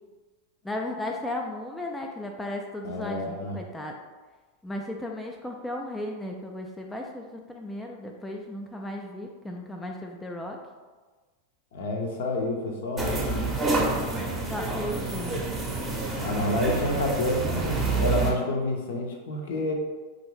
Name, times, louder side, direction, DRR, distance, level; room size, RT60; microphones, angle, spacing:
voice 1, 0.6-4.0 4.6-10.6 14.5-15.4, left 1 dB, 5° left, 1 dB, 0.3 m, -35 dB
voice 2, 2.8-3.6 11.7-13.5 16.2-19.7, left 1 dB, 55° left, 2 dB, 0.6 m, -29 dB
sound 1, 13.0-18.3, right 3 dB, 15° right, 0.7 m, -28 dB
4.5 x 2.5 x 3.1 m, 1.4 s
figure-of-eight pair, 90°, 0 cm